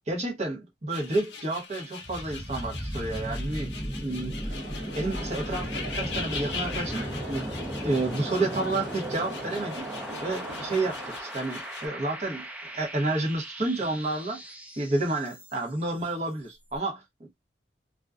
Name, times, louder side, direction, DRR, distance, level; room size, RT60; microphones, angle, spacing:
voice 1, 0.1-3.7 4.0-4.6 4.9-7.5 7.8-9.9 10.2-14.4 14.8-17.4, right 2 dB, 35° right, 0.8 m, -30 dB
sound 1, 0.9-11.9, left 5 dB, 65° left, 0.6 m, -41 dB
sound 2, 2.0-15.8, equal, 5° right, 0.4 m, -37 dB
sound 3, 4.5-11.2, right 2 dB, 60° right, 1.0 m, -42 dB
2.4 x 2.2 x 2.3 m
head